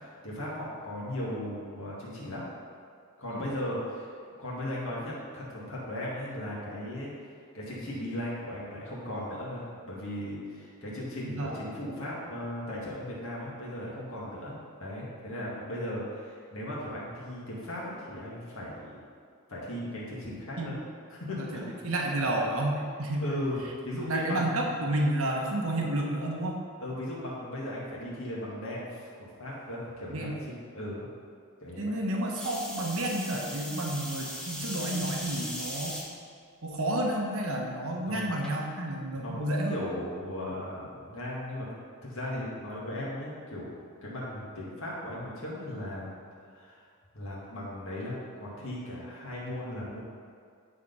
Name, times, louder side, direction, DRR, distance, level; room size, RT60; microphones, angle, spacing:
voice 1, 0.2-2.5 3.2-4.1 4.4-7.1 7.5-19.0 19.5-20.8 21.1-21.7 23.2-23.6 23.8-24.6 26.8-31.1 31.6-31.9 38.1-38.3 39.2-41.7 42.0-43.7 44.0-46.1 46.5-46.9 47.1-50.0, left 1 dB, 60° left, -6 dB, 2.0 m, -37 dB
voice 2, 11.2-11.6 20.6-20.8 21.4-23.4 24.1-26.6 30.1-30.4 31.8-36.0 36.6-39.8, right 1 dB, 70° right, 0 dB, 1.1 m, -31 dB
sound 1, 32.3-36.0 36.7-37.2 38.4-38.5, equal, 5° left, 1.0 m, -38 dB
10.0 x 4.2 x 5.4 m, 2.2 s
head